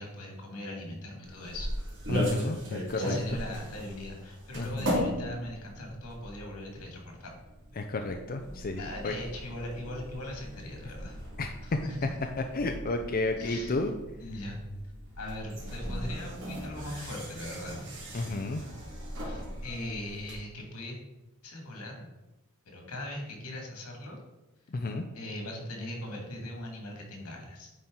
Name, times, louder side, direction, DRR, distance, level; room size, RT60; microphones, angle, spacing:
voice 1, 0.0-1.7 2.9-7.4 8.8-11.2 11.6-12.1 13.4-13.8 14.2-14.6 15.2-17.9 19.2-21.0 21.4-22.1 22.7-24.2 25.1-27.7, left 1 dB, 90° left, 1 dB, 2.0 m, -40 dB
sound 1, 1.2-20.3, equal, 55° right, 2.0 m, -38 dB
voice 2, 2.1-3.4 4.5-5.0 7.8-9.2 11.4-11.8 12.5-13.9 18.1-18.6 24.7-25.0, left 2 dB, 40° left, 5 dB, 0.5 m, -32 dB
9.5 x 4.4 x 3.8 m, 0.98 s
head